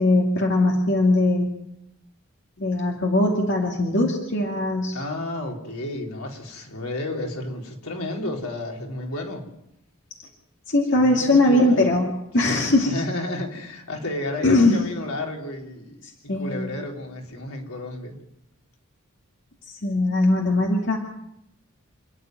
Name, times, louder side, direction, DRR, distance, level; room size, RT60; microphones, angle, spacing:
voice 1, 0.0-1.5 2.6-5.0 10.7-13.0 14.4-14.8 16.3-16.7 19.8-21.0, left 2 dB, 55° left, 0 dB, 2.4 m, -20 dB
voice 2, 4.9-9.5 10.9-11.9 12.4-16.0 16.4-18.2, left 1 dB, 80° left, 0 dB, 4.0 m, -32 dB
28.0 x 10.0 x 9.3 m, 0.83 s
head